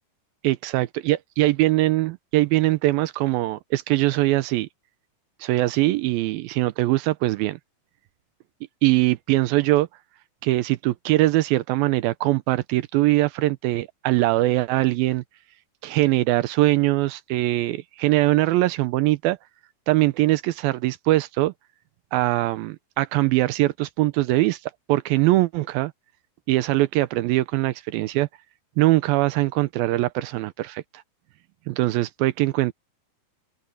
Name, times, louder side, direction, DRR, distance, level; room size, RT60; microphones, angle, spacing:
voice 1, 0.4-4.7 5.4-7.6 8.8-9.9 10.4-15.2 15.8-19.4 19.9-21.5 22.1-25.9 26.5-28.3 28.8-30.8 31.7-32.7, right 18 dB, 85° right, 2.4 m, -22 dB
open air
omnidirectional pair, 4.3 m